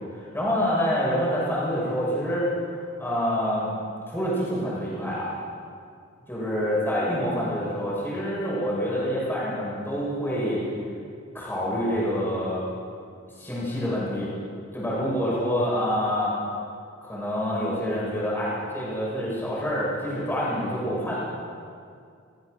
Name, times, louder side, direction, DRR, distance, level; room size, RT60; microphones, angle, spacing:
voice 1, 0.1-2.5 2.8-3.7 4.1-5.3 6.3-10.6 11.3-12.6 13.3-14.3 14.7-16.4 17.0-21.2, equal, 10° left, -7 dB, 6.4 m, -27 dB
30.0 x 14.5 x 6.5 m, 2.3 s
head